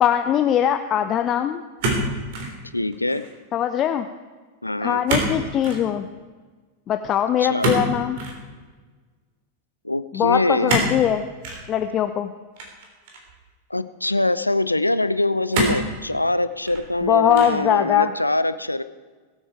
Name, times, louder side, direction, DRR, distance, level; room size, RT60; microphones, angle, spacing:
voice 1, 0.0-1.6 3.5-4.1 4.8-6.1 6.9-8.2 10.1-11.2 11.7-12.3 17.0-18.1, left 10 dB, 30° left, 8 dB, 0.7 m, -21 dB
sound 1, 1.8-2.6 2.9-3.4 5.1-5.4 5.6-5.9 7.6-8.4 10.7-11.0 11.4-11.6 12.6-13.3 14.0-14.1 15.5-15.9 16.5-17.0 17.3-17.7, right 1 dB, 50° right, 3.5 m, -25 dB
voice 2, 2.7-3.2 4.6-5.0 7.4-7.8 9.8-10.8 13.7-18.8, left 2 dB, 85° left, 14 dB, 0.6 m, -23 dB
21.0 x 8.9 x 4.6 m, 1.4 s
figure-of-eight pair, 90°, 0 cm